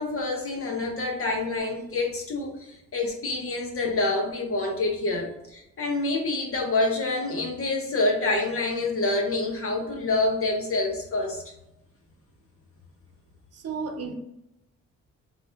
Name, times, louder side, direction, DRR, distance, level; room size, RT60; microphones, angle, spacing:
voice 1, 0.0-11.4, left 2 dB, 45° left, 1 dB, 1.3 m, -27 dB
voice 2, 13.5-14.2, right 5 dB, 55° right, 5 dB, 0.8 m, -33 dB
3.7 x 3.7 x 3.5 m, 0.85 s
cardioid pair, 90°, 30 cm